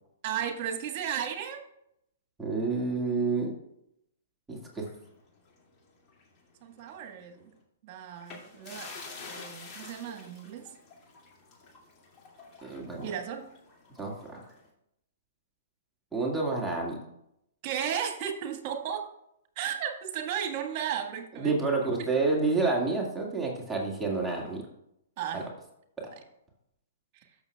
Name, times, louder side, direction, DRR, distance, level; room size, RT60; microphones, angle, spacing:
voice 1, 0.2-1.6 6.6-7.5 7.8-8.9 9.3-10.6 13.0-13.4 17.6-19.0 19.5-21.5 25.2-25.4 27.1-27.3, right 8 dB, 45° right, 4 dB, 1.7 m, -34 dB
voice 2, 2.4-3.5 4.5-4.8 12.6-13.1 14.0-14.4 16.1-17.0 21.3-24.6 25.3-25.4, right 3 dB, 5° right, -3 dB, 2.0 m, -29 dB
sound 1, 4.8-6.4 6.7-6.9 8.2-14.7, left 4 dB, 30° left, 2.4 m, -48 dB
13.5 x 6.5 x 2.4 m, 0.78 s
hypercardioid pair, 120°, 0 cm